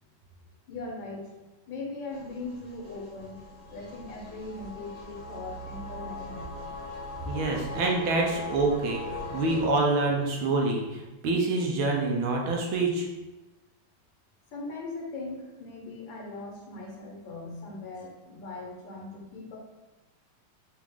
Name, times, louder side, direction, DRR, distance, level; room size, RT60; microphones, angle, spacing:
voice 1, 0.7-1.3 1.7-3.4 3.7-6.5 14.5-19.6, left 3 dB, 70° left, -2 dB, 1.5 m, -39 dB
sound 1, 2.1-9.7, left 2 dB, 45° right, 0.5 m, -40 dB
voice 2, 7.2-13.1, right 3 dB, 75° right, 0 dB, 1.5 m, -26 dB
4.7 x 2.4 x 3.5 m, 1.1 s
omnidirectional pair, 2.3 m